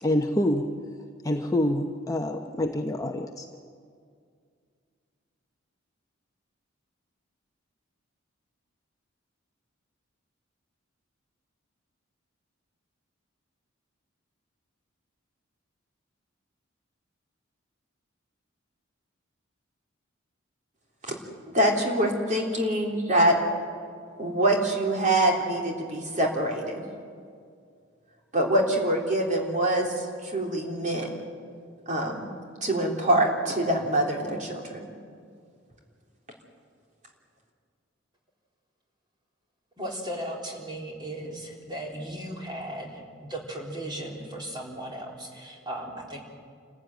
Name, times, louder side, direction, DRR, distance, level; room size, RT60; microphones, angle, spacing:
voice 1, 0.0-0.7 1.2-3.5, left 1 dB, 15° left, 3 dB, 0.9 m, -26 dB
voice 2, 21.5-23.4 24.2-26.8 28.3-31.1 31.9-32.3 32.6-34.9, right 1 dB, 40° right, 0 dB, 3.5 m, -25 dB
voice 3, 39.8-46.2, right 1 dB, 20° right, -1 dB, 3.8 m, -36 dB
28.0 x 15.0 x 9.4 m, 2.2 s
head